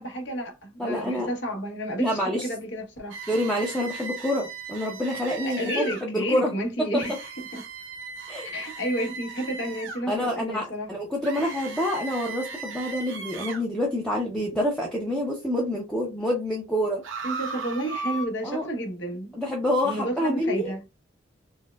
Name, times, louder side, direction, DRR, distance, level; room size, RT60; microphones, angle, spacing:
voice 1, 0.0-3.2 5.4-7.6 8.4-10.9 11.4-11.5 17.2-19.4 19.8-20.8, right 1 dB, 65° left, 1.0 m, -31 dB
voice 2, 0.8-1.3 2.0-2.4 3.3-6.5 6.8-7.0 8.3-8.5 10.1-17.0 18.4-18.7 19.3-20.7, left 1 dB, 5° left, 0.5 m, -27 dB
sound 1, 3.1-6.0 7.0-10.0 11.2-13.6 17.0-18.3, right 4 dB, 80° right, 0.7 m, -37 dB
4.4 x 2.1 x 2.2 m
head